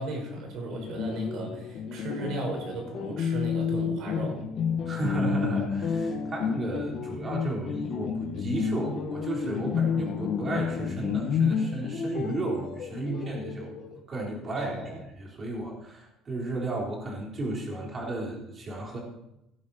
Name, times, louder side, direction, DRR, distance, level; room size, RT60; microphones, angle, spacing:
voice 1, 0.0-4.4 14.6-15.0, right 2 dB, 60° right, 2 dB, 4.6 m, -35 dB
sound 1, 0.7-14.0, left 6 dB, 50° left, 1.2 m, -30 dB
voice 2, 4.8-13.8 14.1-14.7 15.2-19.0, right 2 dB, 25° right, -2 dB, 3.7 m, -33 dB
17.0 x 8.7 x 4.3 m, 0.85 s
cardioid pair, 150°, 0 cm